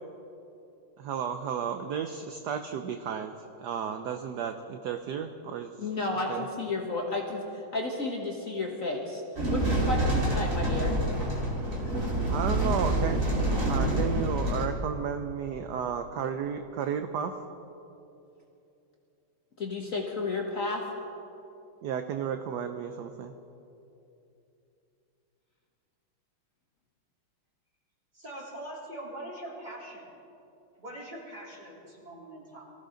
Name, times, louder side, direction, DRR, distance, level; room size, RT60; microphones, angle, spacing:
voice 1, 1.0-5.9 6.3-6.4 12.3-13.2 13.7-17.4 21.8-23.3, right 8 dB, 70° right, 7 dB, 1.0 m, -33 dB
voice 2, 5.8-9.2 9.5-10.9 19.6-20.8, left 2 dB, 40° left, -1 dB, 1.6 m, -32 dB
sound 1, 9.4-14.6, right 1 dB, 35° right, 2.8 m, -27 dB
voice 3, 28.1-30.0 30.8-32.6, right 1 dB, 20° right, -5 dB, 3.6 m, -42 dB
23.0 x 15.5 x 3.8 m, 2.8 s
omnidirectional pair, 2.4 m